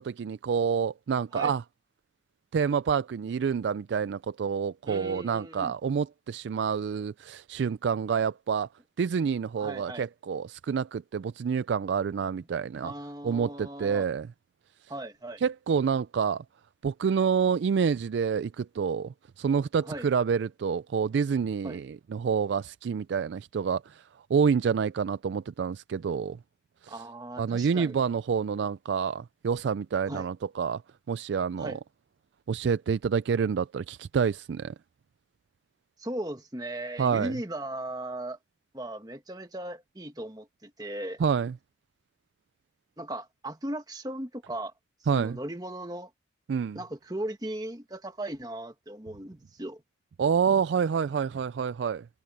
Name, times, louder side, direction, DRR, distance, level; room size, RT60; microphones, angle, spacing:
voice 1, 0.0-1.6 2.5-8.7 9.0-12.9 13.2-14.3 14.8-14.9 15.4-16.4 16.8-26.4 26.8-27.0 27.4-30.8 31.1-31.8 32.5-34.7 37.0-37.4 41.2-41.6 45.1-45.4 46.5-46.8 50.2-52.1, right 6 dB, 75° right, 0.3 m, -28 dB
voice 2, 4.9-5.7 9.6-10.1 12.8-14.0 14.9-15.4 19.9-20.1 21.6-21.8 26.9-28.0 30.1-30.3 31.6-31.8 36.0-38.4 38.7-41.2 43.0-44.7 45.1-46.1 46.7-49.8, right 1 dB, 20° right, 1.5 m, -37 dB
head